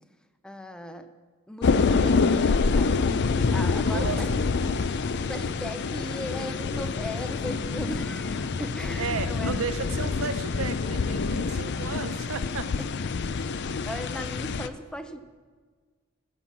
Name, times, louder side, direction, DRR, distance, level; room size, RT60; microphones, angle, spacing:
voice 1, 0.4-1.1 1.5-3.0 3.5-4.5 5.3-9.6 12.8-12.9 13.4-15.2, left 1 dB, 5° left, 9 dB, 0.5 m, -38 dB
sound 1, 1.6-14.7, left 4 dB, 55° left, 0.5 m, -26 dB
voice 2, 3.8-4.2 4.5-4.8 9.0-12.7, right 5 dB, 75° right, 11 dB, 0.6 m, -34 dB
15.5 x 5.9 x 7.2 m, 1.5 s
head